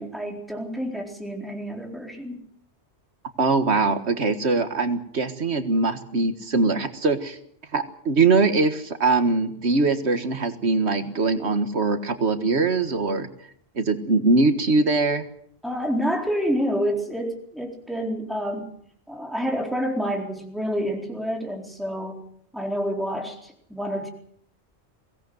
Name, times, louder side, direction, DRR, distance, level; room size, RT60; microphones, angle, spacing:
voice 1, 0.0-2.4 15.6-18.7 19.1-22.2 22.5-24.1, equal, ahead, 1 dB, 4.1 m, -28 dB
voice 2, 3.4-7.4 7.7-13.3 13.8-15.2, right 3 dB, 80° right, 9 dB, 1.8 m, -22 dB
22.5 x 17.5 x 8.0 m, 0.67 s
omnidirectional pair, 1.1 m